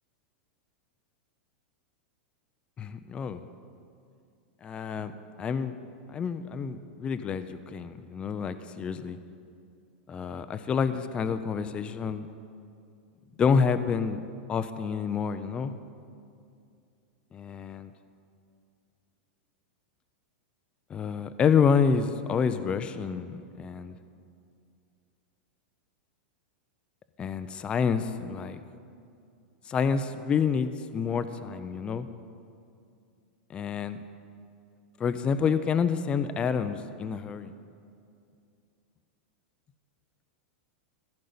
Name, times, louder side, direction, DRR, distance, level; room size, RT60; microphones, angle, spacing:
voice 1, 2.8-3.4 4.6-5.1 5.4-5.7 6.1-9.2 10.1-12.3 13.4-14.2 14.5-15.7 17.3-17.9 20.9-23.9 27.2-28.6 29.7-32.1 33.5-34.0 35.0-37.5, left 6 dB, 20° left, 10 dB, 0.4 m, -28 dB
15.0 x 5.3 x 9.5 m, 2.4 s
supercardioid pair, 150°, 6 cm